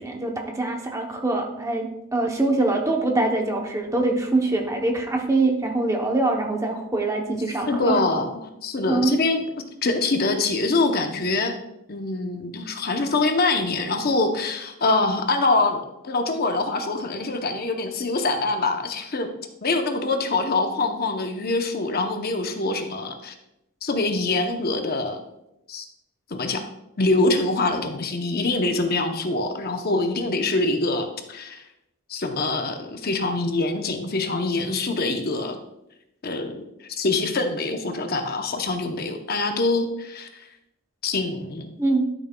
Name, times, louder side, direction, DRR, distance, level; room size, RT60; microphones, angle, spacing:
voice 1, 0.0-8.0 8.9-9.2 41.8-42.1, right 2 dB, 15° right, 2 dB, 0.7 m, -24 dB
voice 2, 7.7-9.5 9.8-11.6 11.9-19.3 19.6-23.3 23.8-25.2 25.7-25.8 26.3-26.6 27.0-31.6 32.1-35.6 36.2-40.5 41.0-41.7, left 3 dB, 45° left, 6 dB, 0.7 m, -24 dB
12.0 x 6.3 x 2.2 m, 0.87 s
head